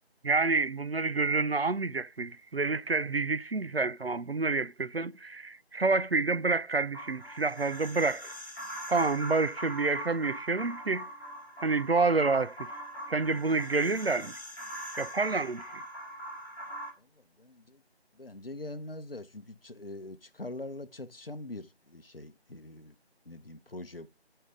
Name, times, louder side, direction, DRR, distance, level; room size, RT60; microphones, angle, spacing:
voice 1, 0.2-8.3 8.9-11.1 11.6-12.7 13.1-14.3 15.0-15.7, right 3 dB, 65° right, 0.7 m, -28 dB
sound 1, 6.9-16.9, right 1 dB, ahead, 2.2 m, -42 dB
voice 2, 17.0-17.8 18.1-22.9 23.2-24.1, left 2 dB, 60° left, 1.0 m, -43 dB
12.0 x 5.7 x 3.7 m
figure-of-eight pair, 175°, 32 cm